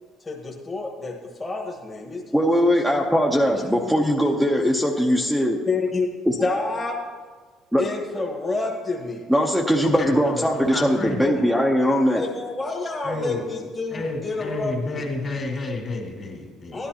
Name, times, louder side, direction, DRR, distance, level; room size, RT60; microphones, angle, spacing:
voice 1, 0.2-2.5 3.5-3.7 5.7-6.1 6.4-7.0 7.8-9.2 11.2-11.6 12.0-15.0 16.7-16.9, left 3 dB, 20° left, -2 dB, 1.4 m, -29 dB
voice 2, 2.3-5.6 6.3-6.4 7.7-7.8 9.3-12.2, equal, ahead, -1 dB, 0.8 m, -20 dB
voice 3, 10.0-11.2 13.0-13.4 13.9-16.8, left 2 dB, 40° left, 0 dB, 2.3 m, -31 dB
12.5 x 10.5 x 2.9 m, 1.5 s
cardioid pair, 95°, 0 cm